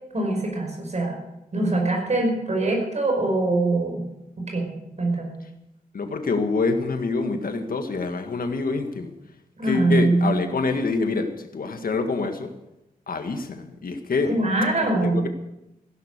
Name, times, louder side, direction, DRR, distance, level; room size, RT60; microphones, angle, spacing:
voice 1, 0.1-1.2 1.5-4.1 4.4-4.7 5.0-5.4 9.6-10.4 14.3-15.2, right 2 dB, 50° right, 2 dB, 5.4 m, -23 dB
voice 2, 5.9-9.1 9.6-12.5 13.1-14.3 15.0-15.3, left 3 dB, 75° left, 6 dB, 1.8 m, -26 dB
16.0 x 11.0 x 6.8 m, 0.90 s
wide cardioid pair, 95°, 15 cm